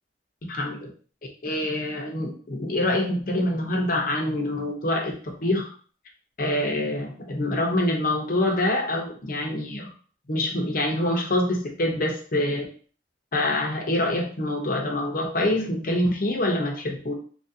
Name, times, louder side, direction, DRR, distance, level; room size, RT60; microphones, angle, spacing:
voice 1, 0.5-0.9 1.4-5.1 5.4-5.7 6.4-9.9 10.3-12.6 13.3-17.1, left 1 dB, 55° left, 1 dB, 0.7 m, -25 dB
2.9 x 2.6 x 2.7 m, 0.43 s
head